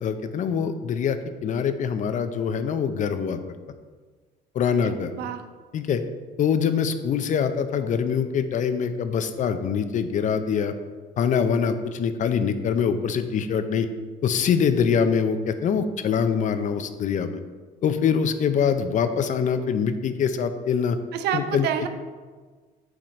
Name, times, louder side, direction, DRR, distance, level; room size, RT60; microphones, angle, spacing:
voice 1, 0.0-3.4 4.5-5.1 5.7-6.0 6.4-10.7 11.2-13.9 14.2-17.4 17.8-21.0 21.3-21.7, left 7 dB, 50° left, 10 dB, 0.6 m, -24 dB
voice 2, 4.7-5.4 21.1-21.9, right 9 dB, 75° right, 8 dB, 0.6 m, -28 dB
7.7 x 3.7 x 4.3 m, 1.4 s
cardioid pair, 110°, 17 cm